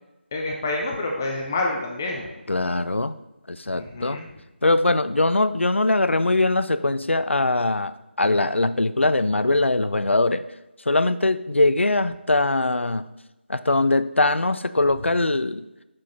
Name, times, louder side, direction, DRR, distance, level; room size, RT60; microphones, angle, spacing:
voice 1, 0.3-2.3 3.7-4.3, left 2 dB, 15° left, 0 dB, 0.5 m, -28 dB
voice 2, 2.5-3.2 3.5-4.2 4.6-10.4 10.9-13.1 13.5-15.6, left 2 dB, 85° left, 14 dB, 0.4 m, -21 dB
6.1 x 4.6 x 4.1 m, 0.99 s
figure-of-eight pair, 165°, 6 cm